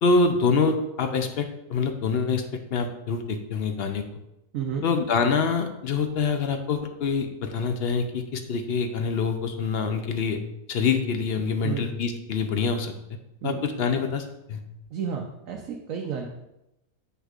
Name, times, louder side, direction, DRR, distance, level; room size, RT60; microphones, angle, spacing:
voice 1, 0.0-4.0 4.8-10.4 10.7-12.9 13.4-14.6, left 4 dB, 55° left, 6 dB, 0.7 m, -25 dB
voice 2, 14.9-16.3, right 7 dB, 70° right, 2 dB, 1.1 m, -31 dB
8.1 x 6.2 x 2.4 m, 0.88 s
omnidirectional pair, 1.5 m